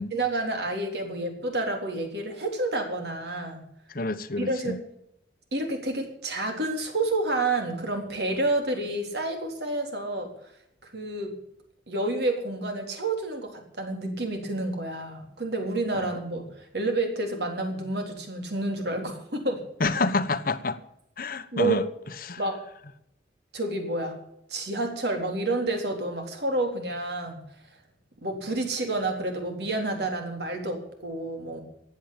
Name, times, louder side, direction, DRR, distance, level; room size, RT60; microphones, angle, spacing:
voice 1, 0.1-3.7 4.4-4.8 5.5-10.3 10.8-11.3 11.9-19.6 21.5-21.8 22.4-22.6 23.5-24.2 24.5-27.4 28.2-31.6, right 2 dB, 60° right, 3.8 m, -29 dB
voice 2, 3.9-4.8 16.0-16.1 19.8-20.8 21.2-21.8 22.2-22.4, left 3 dB, 50° left, 1.0 m, -28 dB
15.0 x 9.6 x 8.8 m
head